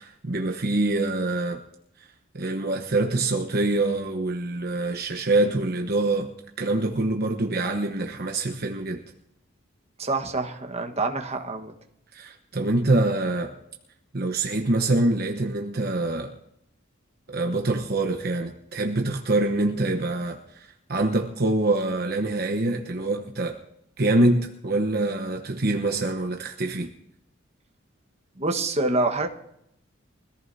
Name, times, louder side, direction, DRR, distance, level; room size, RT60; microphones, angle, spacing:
voice 1, 0.0-1.6 2.3-6.3 6.6-9.0 12.1-13.5 14.1-16.3 17.3-23.6 24.0-26.9, right 2 dB, 55° right, 3 dB, 1.1 m, -25 dB
voice 2, 10.0-11.7 28.4-29.3, right 2 dB, 35° right, 3 dB, 1.4 m, -26 dB
24.0 x 14.5 x 2.8 m, 0.78 s
head